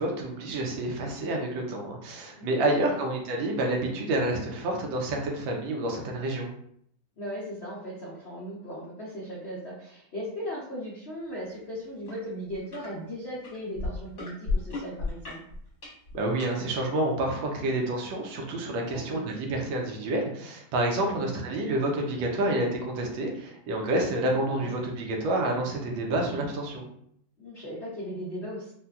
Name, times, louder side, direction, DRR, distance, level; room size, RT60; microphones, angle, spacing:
voice 1, 0.0-6.5 16.1-26.9, right 1 dB, 85° right, 0 dB, 1.5 m, -28 dB
voice 2, 2.3-2.8 7.2-15.4 18.9-19.3 21.0-21.4 24.6-24.7 27.4-28.7, equal, 80° left, -6 dB, 0.5 m, -38 dB
sound 1, 12.1-12.2 12.5-12.9 13.4-16.5 17.2-17.3, left 3 dB, 45° left, 1.3 m, -33 dB
4.1 x 2.2 x 2.3 m, 0.67 s
omnidirectional pair, 2.1 m